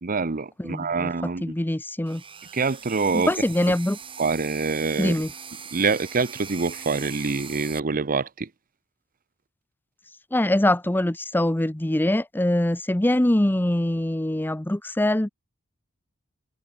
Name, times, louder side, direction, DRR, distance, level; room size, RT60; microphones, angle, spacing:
voice 1, 0.0-1.4 2.5-3.3 4.2-5.2 5.7-8.5, right 4 dB, 40° right, 0.9 m, -25 dB
voice 2, 0.6-2.2 3.1-4.0 5.0-5.3 10.3-15.3, left 1 dB, 10° left, 0.7 m, -23 dB
sound 1, 2.1-7.8, right 6 dB, 25° right, 1.6 m, -41 dB
head